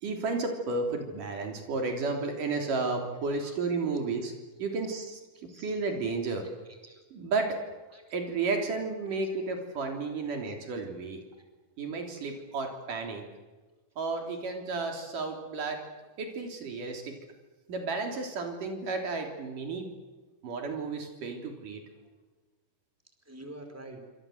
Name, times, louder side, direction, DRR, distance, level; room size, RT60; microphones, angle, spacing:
voice 1, 0.0-4.3 4.6-6.5 7.1-7.6 8.1-11.2 11.8-13.2 14.0-15.8 16.2-17.2 17.7-19.9 20.4-21.8, right 3 dB, 85° right, 3 dB, 5.0 m, -32 dB
voice 2, 5.5-5.8 6.7-7.0 7.9-8.0 9.2-9.4 10.2-10.4 12.4-12.5 16.0-16.1 23.2-24.0, right 1 dB, 5° right, 4 dB, 4.5 m, -48 dB
27.0 x 26.0 x 7.9 m, 1.3 s
omnidirectional pair, 3.6 m